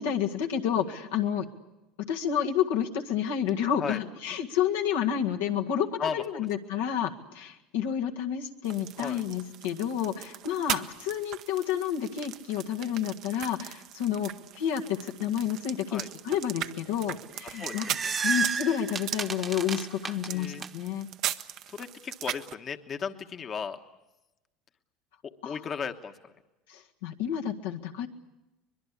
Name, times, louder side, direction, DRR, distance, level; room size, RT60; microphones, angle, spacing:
voice 1, 0.0-1.5 2.0-18.0 18.2-21.1 25.4-25.7 26.7-28.1, left 9 dB, 85° left, 1 dB, 1.8 m, -30 dB
sound 1, 8.6-22.5, right 12 dB, 60° right, 0.9 m, -39 dB
sound 2, 17.4-20.7, right 5 dB, 30° right, 1.1 m, -32 dB
voice 2, 17.5-18.1 20.3-20.7 21.7-23.8 25.4-26.1, left 6 dB, 40° left, 6 dB, 1.2 m, -35 dB
23.5 x 21.5 x 8.5 m, 1.0 s
supercardioid pair, 95°, 0 cm